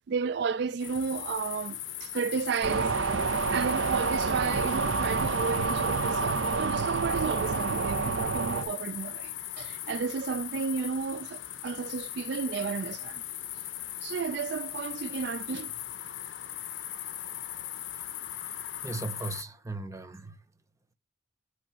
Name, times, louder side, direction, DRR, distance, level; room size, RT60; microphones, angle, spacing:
voice 1, 0.1-3.0 3.5-13.2 14.0-15.7, right 5 dB, 55° right, 0.3 m, -33 dB
sound 1, 0.8-19.4, left 12 dB, 65° left, 0.7 m, -39 dB
sound 2, 2.6-8.6, right 4 dB, 75° right, 0.8 m, -28 dB
voice 2, 18.4-20.4, right 3 dB, 15° right, 0.8 m, -38 dB
8.8 x 3.1 x 5.9 m
head